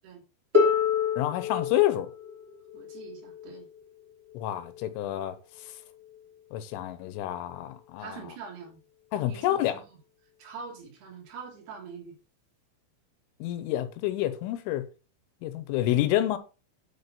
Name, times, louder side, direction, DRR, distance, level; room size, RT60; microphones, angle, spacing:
Harp, 0.5-6.3 7.4-7.5, left 6 dB, 25° right, 1.4 m, -30 dB
voice 1, 1.2-2.1 4.3-5.4 6.5-8.2 9.1-9.8 13.4-14.8 15.4-16.4, left 13 dB, 80° left, 3.4 m, -28 dB
voice 2, 2.7-3.7 8.0-8.8 9.3-10.0 10.4-12.2, right 6 dB, 55° right, 5.1 m, -44 dB
9.9 x 5.0 x 6.7 m
omnidirectional pair, 5.7 m